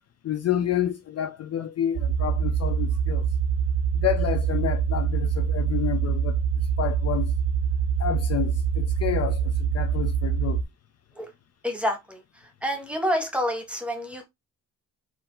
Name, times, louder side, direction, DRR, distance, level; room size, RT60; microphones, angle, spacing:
voice 1, 0.2-3.3 3.9-7.3 8.0-10.6, left 10 dB, 50° left, 0.5 m, -29 dB
sound 1, 2.0-10.6, right 7 dB, 70° right, 0.7 m, -25 dB
voice 2, 11.6-14.2, equal, 5° right, 1.3 m, -28 dB
4.4 x 2.8 x 3.7 m
cardioid pair, 130°, 32 cm